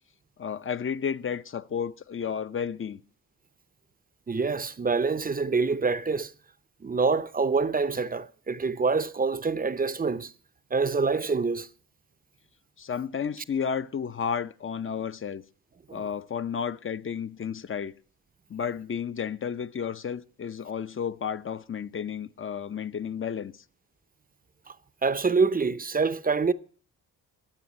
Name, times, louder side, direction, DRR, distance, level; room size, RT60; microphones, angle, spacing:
voice 1, 0.4-3.0 12.8-15.4 15.9-17.9 18.5-23.5, left 7 dB, 35° left, 0.6 m, -32 dB
voice 2, 4.3-6.3 6.8-10.3 10.7-11.7 15.9-16.0 25.0-26.5, right 4 dB, 25° right, 0.7 m, -26 dB
22.5 x 7.8 x 4.2 m
supercardioid pair, 65°, 37 cm